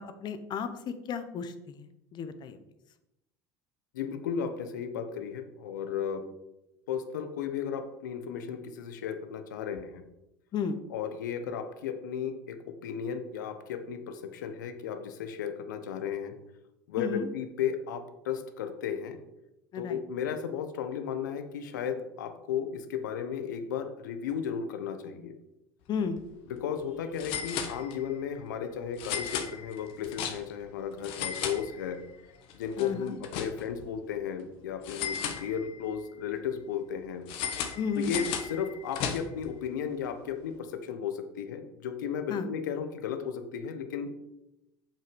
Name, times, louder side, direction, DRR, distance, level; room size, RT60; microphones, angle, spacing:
voice 1, 0.0-1.9 2.1-2.6 10.5-10.8 17.0-17.3 19.7-20.0 25.9-26.2 32.8-33.1 37.7-38.1 42.3-42.5, left 6 dB, 50° left, 10 dB, 1.1 m, -33 dB
voice 2, 3.9-6.2 6.9-10.0 10.9-12.6 12.8-16.3 16.9-19.2 19.8-25.3 26.5-32.0 32.5-37.3 37.9-44.1, left 7 dB, 85° left, 8 dB, 1.0 m, -34 dB
sound 1, 26.0-26.2 26.5-26.6 27.2-28.2 29.0-30.7 31.0-32.2 32.5-33.9 34.8-35.9 37.3-39.5, left 8 dB, 65° left, 1.3 m, -36 dB
7.4 x 6.0 x 5.3 m, 0.90 s
hypercardioid pair, 80°, 10 cm